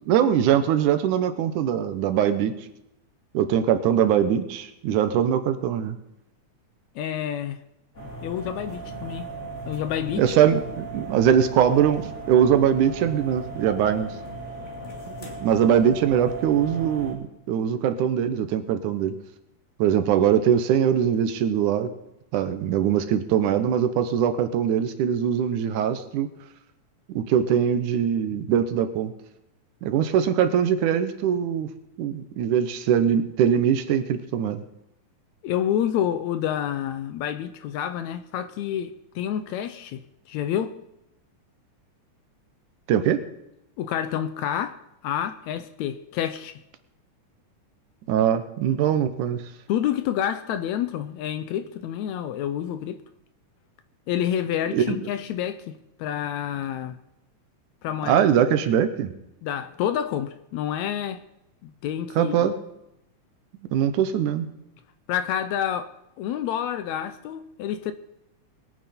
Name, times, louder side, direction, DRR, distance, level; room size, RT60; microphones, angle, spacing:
voice 1, 0.1-2.5 3.3-6.0 10.2-14.1 15.2-19.2 19.8-21.9 22.3-26.3 27.1-29.1 29.8-31.7 32.0-34.6 42.9-43.2 48.1-49.4 54.7-55.0 58.0-59.1 62.2-62.5 63.7-64.5, right 9 dB, 80° right, 2.4 m, -22 dB
voice 2, 7.0-7.6 8.2-9.3 9.7-10.2 28.3-28.5 35.4-40.0 40.3-40.8 43.8-44.8 45.0-46.6 49.7-53.0 54.1-57.0 57.8-58.3 59.4-61.2 61.6-62.5 65.1-67.9, left 10 dB, 80° left, 1.8 m, -28 dB
sound 1, 7.9-17.1, right 3 dB, 25° left, 2.1 m, -37 dB
21.0 x 9.2 x 4.3 m
omnidirectional pair, 3.6 m